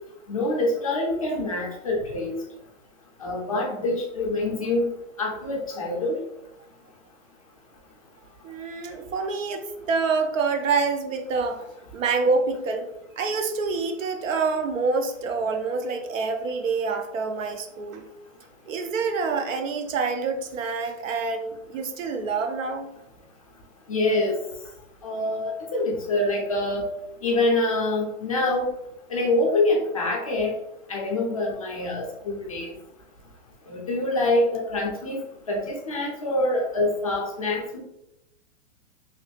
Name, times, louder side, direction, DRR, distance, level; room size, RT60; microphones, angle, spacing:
voice 1, 0.3-2.4 3.2-4.9 5.2-6.2 23.9-24.3 25.0-26.8 27.2-28.7 29.1-30.5 30.9-32.7 33.7-35.2 35.5-37.8, left 2 dB, 30° left, -2 dB, 0.4 m, -25 dB
voice 2, 8.4-11.6 11.9-12.9 13.2-18.0 18.7-22.9, right 4 dB, 90° right, 6 dB, 0.7 m, -27 dB
3.0 x 2.4 x 3.1 m, 0.86 s
hypercardioid pair, 165°, 38 cm